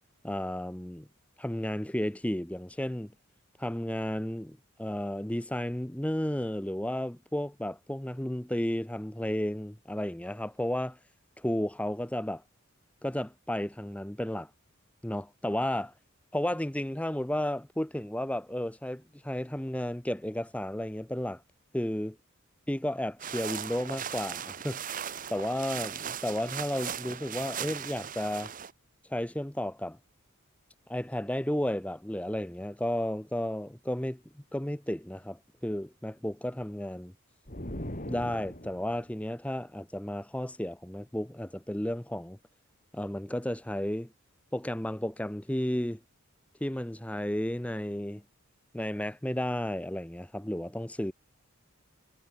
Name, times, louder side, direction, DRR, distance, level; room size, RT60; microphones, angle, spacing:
voice 1, 0.2-1.1 1.4-3.1 3.6-11.0 11.4-12.4 13.0-14.5 15.0-15.9 16.3-21.4 21.7-22.2 22.7-24.8 25.3-28.5 29.1-30.0 30.9-34.2 34.5-37.1 38.1-42.4 42.9-44.1 44.5-46.0 46.6-48.2 48.7-51.1, left 1 dB, 5° left, 0.8 m, -33 dB
sound 1, 23.2-28.7, right 8 dB, 40° right, 1.0 m, -38 dB
sound 2, 37.5-39.0, left 1 dB, 35° left, 4.1 m, -39 dB
head